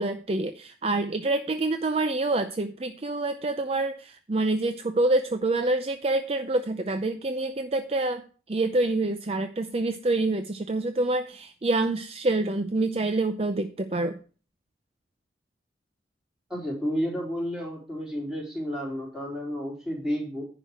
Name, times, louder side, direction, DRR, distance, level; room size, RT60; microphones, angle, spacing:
voice 1, 0.0-14.2, right 2 dB, 35° right, 9 dB, 0.6 m, -27 dB
voice 2, 16.5-20.4, equal, 5° right, -3 dB, 3.9 m, -31 dB
10.5 x 5.1 x 7.5 m, 0.38 s
head